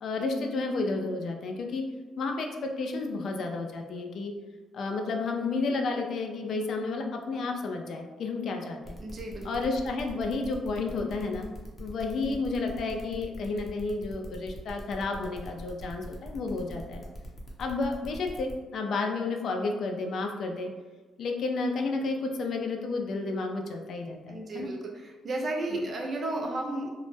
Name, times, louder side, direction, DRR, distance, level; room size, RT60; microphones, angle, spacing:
voice 1, 0.0-1.9 2.2-4.3 4.7-9.0 9.4-11.5 11.8-17.0 17.6-20.7 21.2-24.7 25.7-25.9, left 3 dB, 65° left, 2 dB, 0.3 m, -31 dB
sound 1, 8.8-18.5, equal, 30° left, 0.7 m, -44 dB
voice 2, 9.0-9.6 24.3-26.9, right 2 dB, 45° right, 1 dB, 0.5 m, -33 dB
2.1 x 2.0 x 3.1 m, 1.3 s
cardioid pair, 90°, 0 cm